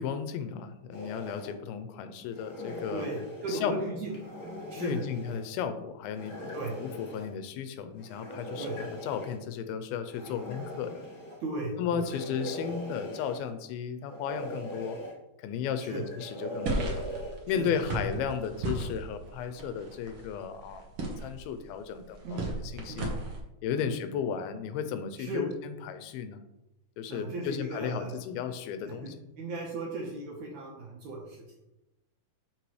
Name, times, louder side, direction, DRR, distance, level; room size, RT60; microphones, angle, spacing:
voice 1, 0.0-3.1 3.5-4.0 4.8-11.0 11.8-15.0 15.4-17.1 17.5-20.8 21.2-23.1 23.6-26.4 27.0-29.2, left 7 dB, 85° left, 9 dB, 2.4 m, -34 dB
sound 1, 0.9-1.5 2.3-3.6 4.0-5.4 6.1-7.3 8.0-9.4 10.1-11.4 12.0-13.5 14.0-15.1 15.8-17.4, equal, 60° left, 0.9 m, -41 dB
voice 2, 2.9-4.1 4.7-5.0 5.3-5.4 6.5-6.7 8.6-8.7 11.4-12.0 15.9-16.0 17.6-17.8 22.2-22.5 22.9-23.1 23.7-23.9 25.2-25.5 27.1-28.1 29.0-29.1 29.4-31.4, right 2 dB, 70° right, -2 dB, 1.9 m, -36 dB
sound 2, 16.6-23.4, right 2 dB, 90° right, 1.2 m, -36 dB
6.8 x 6.0 x 3.1 m, 0.91 s
omnidirectional pair, 4.3 m